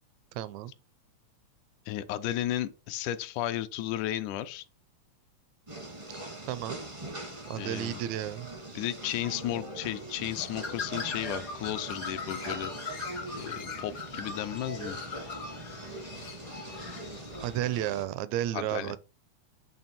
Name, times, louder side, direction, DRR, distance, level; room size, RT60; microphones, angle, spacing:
voice 1, 0.3-0.7 6.4-6.8 7.5-8.5 16.0-16.1 17.4-19.0, right 12 dB, 80° right, 1.7 m, -32 dB
voice 2, 1.9-4.6 7.5-8.0 8.8-12.7 13.4-15.0 18.5-18.9, left 12 dB, 80° left, 2.0 m, -34 dB
sound 1, 5.7-18.0, right 2 dB, 35° right, 0.4 m, -42 dB
Bird, 10.1-17.6, left 4 dB, 65° left, 0.8 m, -41 dB
8.8 x 3.2 x 4.2 m
omnidirectional pair, 3.6 m